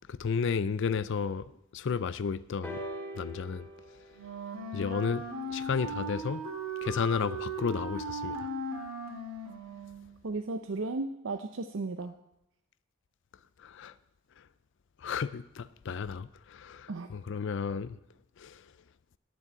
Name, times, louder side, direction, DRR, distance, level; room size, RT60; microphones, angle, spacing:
voice 1, 0.1-1.5 1.7-2.8 3.2-3.7 4.7-5.2 5.5-6.4 6.8-8.4 13.6-13.9 15.0-18.0 18.4-18.6, left 6 dB, 60° left, 0.4 m, -32 dB
sound 1, 2.6-6.5 7.4-7.5, equal, 10° left, 2.0 m, -44 dB
Wind instrument woodwind instrument, 4.1-10.1, right 1 dB, 80° right, 2.8 m, -37 dB
voice 2, 10.2-12.1 16.9-17.1, right 3 dB, 65° right, 0.6 m, -35 dB
10.0 x 7.5 x 9.1 m
head